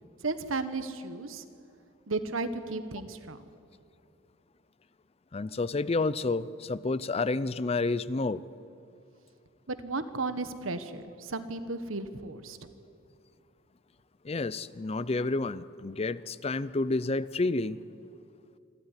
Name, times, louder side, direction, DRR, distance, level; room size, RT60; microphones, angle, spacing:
voice 1, 0.2-1.4 2.1-3.4 9.7-12.7, right 3 dB, 80° right, 11 dB, 1.4 m, -34 dB
voice 2, 5.3-8.4 14.2-17.8, left 3 dB, 30° left, 17 dB, 0.5 m, -30 dB
27.0 x 13.0 x 9.7 m, 2.6 s
head